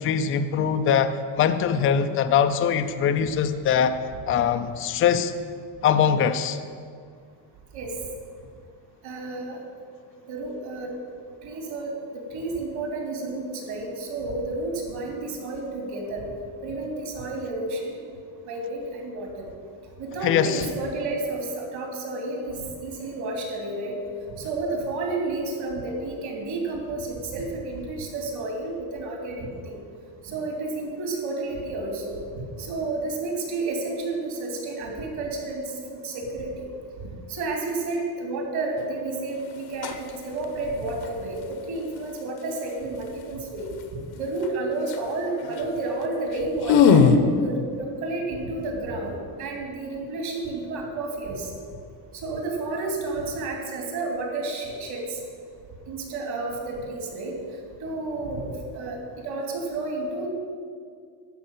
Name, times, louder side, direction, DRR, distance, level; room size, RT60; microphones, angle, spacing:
voice 1, 0.0-4.0 4.3-5.3 5.8-6.6 20.2-20.6, left 8 dB, 30° left, 9 dB, 0.5 m, -22 dB
voice 2, 9.0-9.6 10.3-10.9 11.4-11.9 12.3-16.2 16.6-18.0 18.5-19.3 20.0-24.0 24.4-29.8 30.2-32.2 32.6-36.6 37.3-41.4 41.6-43.7 44.2-47.1 47.4-51.5 52.2-55.2 55.9-57.3 57.8-58.5 58.7-59.0 59.2-60.3, right 2 dB, 50° right, 0 dB, 3.2 m, -31 dB
sound 1, 38.8-39.0 39.6-40.1 40.4-41.1 44.4-44.5 44.8-45.1 45.4-45.6 46.0-46.1 46.3-47.2, left 6 dB, 55° left, 0.9 m, -19 dB
12.5 x 5.4 x 9.1 m, 2.1 s
cardioid pair, 150°, 48 cm